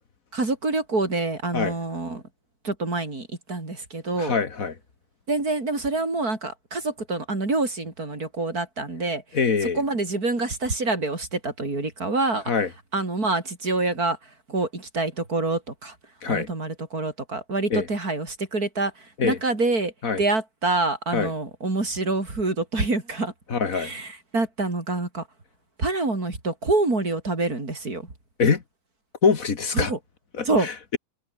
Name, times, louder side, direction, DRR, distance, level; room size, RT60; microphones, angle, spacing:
voice 1, 0.3-2.2 2.6-4.4 5.3-9.2 9.6-12.5 12.9-14.2 14.5-16.0 16.3-19.9 20.2-23.3 23.7-25.2 25.8-28.1 29.7-30.0 30.5-30.7, right 3 dB, 80° right, 5.4 m, -26 dB
voice 2, 4.2-4.7 9.3-9.8 12.5-12.7 16.2-16.5 17.7-17.9 19.2-19.4 20.0-20.2 21.1-21.3 23.5-23.9 28.4-28.6 29.2-29.9 30.4-31.0, left 5 dB, 65° left, 2.3 m, -24 dB
omnidirectional pair, 1.6 m